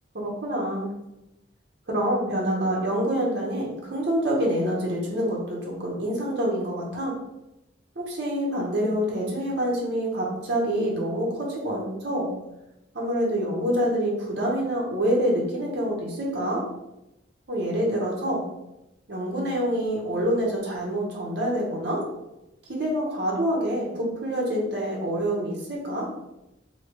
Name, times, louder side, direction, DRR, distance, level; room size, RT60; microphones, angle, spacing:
voice 1, 0.1-0.9 1.9-7.1 8.0-12.3 12.9-16.6 17.5-18.4 19.1-22.0 22.7-26.1, equal, 60° right, -3 dB, 0.8 m, -26 dB
3.1 x 2.8 x 2.9 m, 0.91 s
head